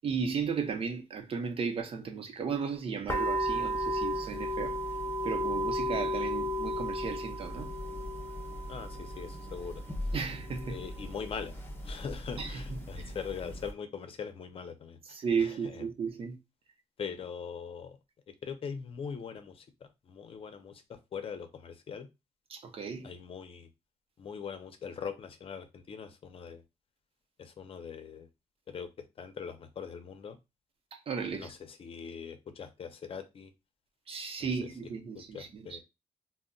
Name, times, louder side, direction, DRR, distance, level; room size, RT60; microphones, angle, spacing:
voice 1, 0.0-4.8 5.2-7.7 10.1-10.8 12.4-13.1 15.1-16.4 22.5-23.1 30.9-31.5 34.1-35.8, right 6 dB, 55° right, 0.7 m, -35 dB
sound 1, 3.1-13.7, equal, 20° left, 0.7 m, -35 dB
voice 2, 8.7-9.8 10.7-11.5 11.8-15.9 17.0-18.0 18.3-19.6 20.1-22.1 23.0-23.7 24.2-26.6 27.4-28.3 28.7-28.9 29.2-30.4 31.3-33.5 34.4-34.7 35.1-35.8, left 6 dB, 50° left, 0.6 m, -41 dB
2.2 x 2.1 x 3.7 m
cardioid pair, 100°, 12 cm